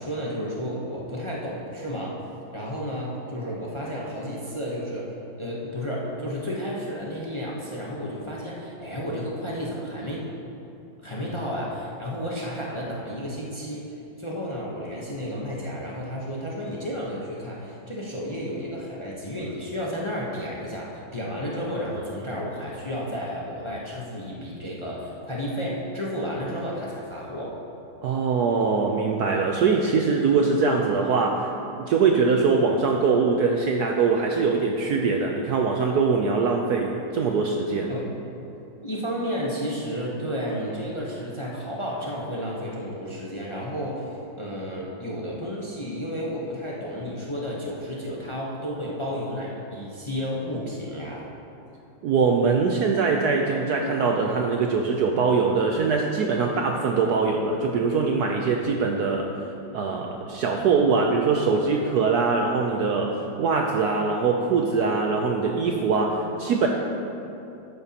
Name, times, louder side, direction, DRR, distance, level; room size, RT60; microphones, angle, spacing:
voice 1, 0.0-2.2 2.5-5.1 5.4-10.3 11.0-27.6 37.9-38.1 38.8-44.1 44.4-51.3, equal, 30° left, -5 dB, 0.5 m, -32 dB
voice 2, 28.0-37.9 52.0-59.4 59.7-66.7, right 4 dB, 70° right, 2 dB, 0.9 m, -22 dB
12.5 x 9.0 x 2.9 m, 2.8 s
omnidirectional pair, 2.2 m